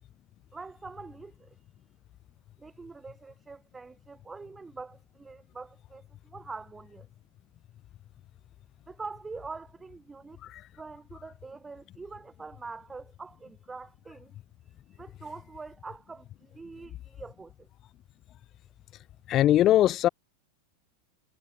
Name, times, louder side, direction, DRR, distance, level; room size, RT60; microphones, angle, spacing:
voice 1, 0.5-1.6 2.6-7.1 8.9-10.4 10.8-14.4 14.7-17.7, right 4 dB, 10° right, 7.3 m, -44 dB
voice 2, 19.3-20.1, left 13 dB, 30° left, 0.7 m, -21 dB
figure-of-eight pair, 90°, 0 cm